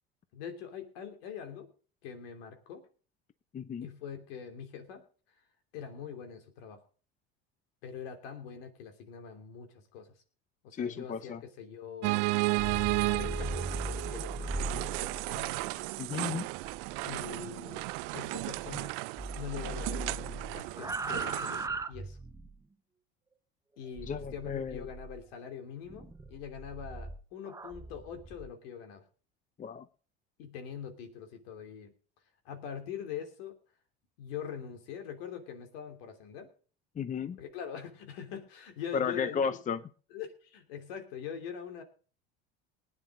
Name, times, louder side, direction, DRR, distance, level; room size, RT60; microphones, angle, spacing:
voice 1, 0.3-1.7 2.0-2.8 3.8-5.0 5.7-6.8 7.8-10.1 10.6-12.2 13.0-14.5 15.0-15.5 17.0-17.8 18.1-18.9 19.4-22.2 23.8-29.0 30.4-31.9 32.4-33.6 34.2-36.5 37.4-39.4 40.1-41.8, left 7 dB, 75° left, 6 dB, 3.0 m, -43 dB
voice 2, 3.5-3.9 10.7-11.4 16.0-16.5 24.1-24.8 29.6-29.9 37.0-37.4 38.9-39.8, left 6 dB, 25° left, 13 dB, 0.7 m, -33 dB
sound 1, 12.0-21.7, right 24 dB, 70° right, 0.5 m, -34 dB
sound 2, 12.5-18.9 19.2-22.6 24.0-25.2 25.9-28.5, right 2 dB, 10° right, 0.8 m, -40 dB
19.5 x 9.5 x 3.8 m, 0.38 s
hypercardioid pair, 90°, 30 cm